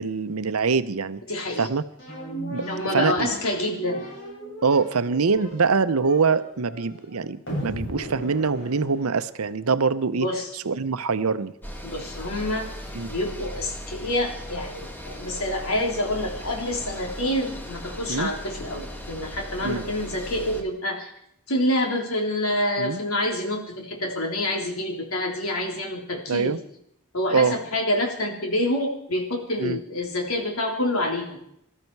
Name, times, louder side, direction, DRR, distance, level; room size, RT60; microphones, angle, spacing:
voice 1, 0.0-1.2 1.6-1.8 2.5-2.7 2.9-3.3 4.6-10.3 10.5-11.5 12.9-13.1 18.1-18.3 19.6-19.8 22.8-23.0 26.3-26.6 27.3-27.6 29.6-29.8, right 4 dB, 80° right, 13 dB, 0.8 m, -24 dB
voice 2, 1.3-1.7 2.6-4.1 10.1-10.5 11.8-12.7 13.1-21.1 21.5-26.6 27.1-31.4, left 1 dB, 75° left, 1 dB, 3.4 m, -27 dB
sound 1, 2.0-9.5, right 1 dB, 60° left, 7.5 m, -36 dB
sound 2, 11.6-20.6, equal, 10° left, 1.9 m, -38 dB
19.5 x 13.5 x 4.7 m, 0.75 s
head